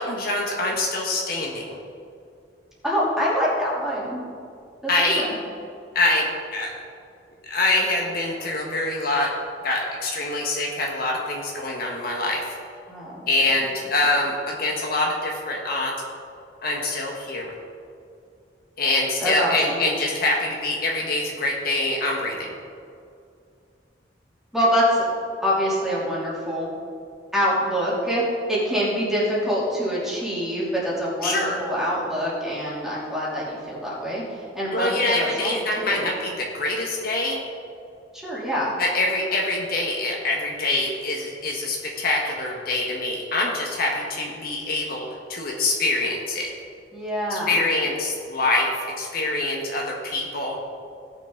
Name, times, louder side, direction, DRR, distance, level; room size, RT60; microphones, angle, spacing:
voice 1, 0.0-1.8 4.9-5.2 5.9-6.7 7.5-9.3 9.6-12.6 13.3-15.9 16.6-17.5 18.8-22.6 31.2-31.6 34.7-37.4 38.8-46.5 47.3-48.7 49.0-50.6, left 2 dB, 55° left, -1 dB, 1.4 m, -25 dB
voice 2, 2.8-4.2 5.1-5.3 12.9-13.5 19.2-19.8 24.5-25.0 25.4-26.7 27.3-28.2 28.5-36.1 38.1-38.8 46.9-47.6, equal, ahead, -8 dB, 2.9 m, -25 dB
17.5 x 6.5 x 3.9 m, 2.4 s
head